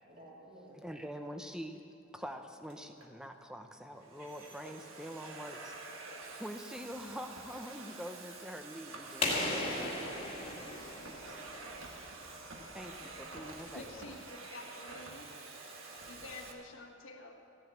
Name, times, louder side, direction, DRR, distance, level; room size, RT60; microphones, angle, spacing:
voice 1, 0.0-0.8 4.2-4.7 9.7-10.2 10.5-10.9, right 1 dB, 40° right, -4 dB, 2.9 m, -55 dB
voice 2, 0.7-1.8 2.1-5.7 6.4-9.8 12.7-13.9, equal, 5° right, 6 dB, 0.6 m, -45 dB
Domestic sounds home sounds, 2.7-3.1 3.8-16.5, right 3 dB, 70° right, 1.4 m, -48 dB
sound 1, 9.2-11.9, left 2 dB, 25° left, 1.9 m, -36 dB
voice 3, 13.7-15.3 16.1-17.4, left 2 dB, 70° left, 2 dB, 1.5 m, -49 dB
15.0 x 7.6 x 8.2 m, 2.6 s
head